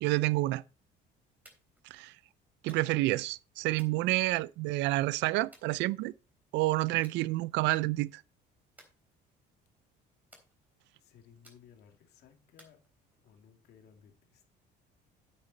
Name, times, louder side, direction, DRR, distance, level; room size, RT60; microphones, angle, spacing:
voice 1, 0.0-0.6 1.9-2.1 2.6-6.1 6.5-8.2, right 19 dB, 75° right, 0.5 m, -29 dB
sound 1, 1.5-1.9 2.7-3.2 3.8-4.7 5.5-6.3 7.0-7.2 7.6-8.0 8.8-9.6 10.3-10.9 11.4-12.0 12.6-13.4, right 1 dB, 10° right, 3.7 m, -61 dB
voice 2, 11.0-12.8 13.2-14.5, left 8 dB, 60° left, 2.5 m, -59 dB
9.2 x 8.9 x 4.1 m
cardioid pair, 140°, 18 cm